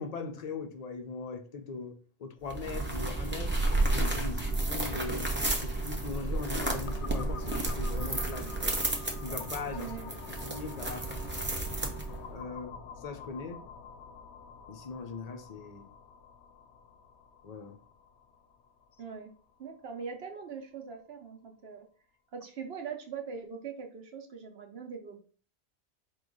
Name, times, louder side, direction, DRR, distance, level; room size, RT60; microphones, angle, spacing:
voice 1, 0.0-3.6 3.9-5.3 5.6-8.7 9.2-9.9 10.3-11.3 12.3-13.6 14.7-15.9 17.4-17.8, left 4 dB, 55° left, 0.4 m, -40 dB
sound 1, 2.4-12.3, right 2 dB, 15° right, 0.5 m, -32 dB
sound 2, 6.9-20.4, left 6 dB, 70° left, 0.8 m, -48 dB
voice 2, 9.7-10.3 13.5-13.6 19.0-19.3 19.6-21.9 22.3-25.2, right 6 dB, 60° right, 1.0 m, -42 dB
4.7 x 2.3 x 3.8 m
omnidirectional pair, 1.2 m